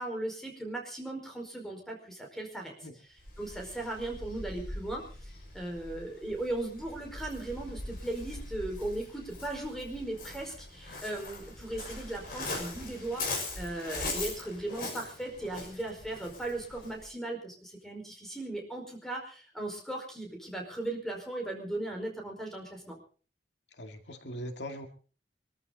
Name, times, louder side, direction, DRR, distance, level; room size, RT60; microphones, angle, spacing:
voice 1, 0.0-2.7 3.4-13.2 13.5-23.0, right 2 dB, ahead, 2 dB, 4.9 m, -37 dB
Waves surf, 3.2-17.0, left 2 dB, 55° left, 6.1 m, -41 dB
voice 2, 23.7-24.9, equal, 80° left, 5 dB, 2.2 m, -41 dB
24.0 x 14.0 x 4.0 m, 0.39 s
head